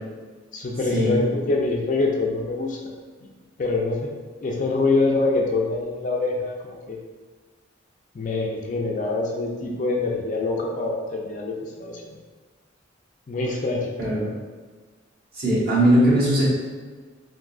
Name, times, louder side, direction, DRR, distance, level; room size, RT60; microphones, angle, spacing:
voice 1, 0.5-2.8 3.2-3.3 3.6-4.1 4.4-7.0 8.1-12.2 13.3-13.9, left 3 dB, 40° left, 0 dB, 0.3 m, -25 dB
voice 2, 14.0-14.3 15.3-16.4, right 1 dB, 55° right, -9 dB, 1.2 m, -19 dB
3.6 x 2.6 x 2.3 m, 1.4 s
head